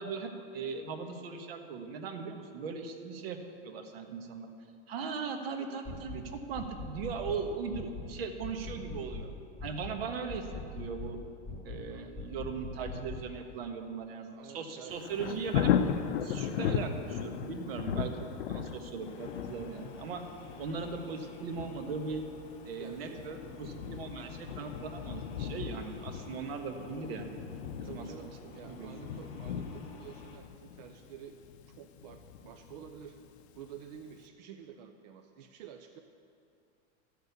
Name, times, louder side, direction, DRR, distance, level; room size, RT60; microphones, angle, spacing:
voice 1, 0.0-3.4 3.6-4.5 4.9-9.3 9.6-11.2 11.6-15.7 16.2-20.2 20.6-22.2 22.6-27.4 27.8-28.1 28.6-28.9, right 5 dB, 65° right, 5 dB, 1.4 m, -39 dB
sound 1, 5.8-6.2 6.5-7.4 7.7-8.1 8.4-9.3 9.6-10.0 10.3-11.2 11.5-11.9 12.2-13.3, left 3 dB, 5° right, 1.5 m, -42 dB
voice 2, 11.9-12.3 14.3-14.9 22.8-23.3 26.1-26.3 27.8-31.3 31.7-33.2 33.5-36.0, right 8 dB, 40° right, 5 dB, 0.6 m, -50 dB
Thunder, 14.9-33.7 34.1-34.2, left 8 dB, 75° left, 0.8 m, -37 dB
sound 2, 19.0-30.4, left 4 dB, 20° left, 0.8 m, -53 dB
13.5 x 6.7 x 8.1 m, 2.5 s
supercardioid pair, 175°, 32 cm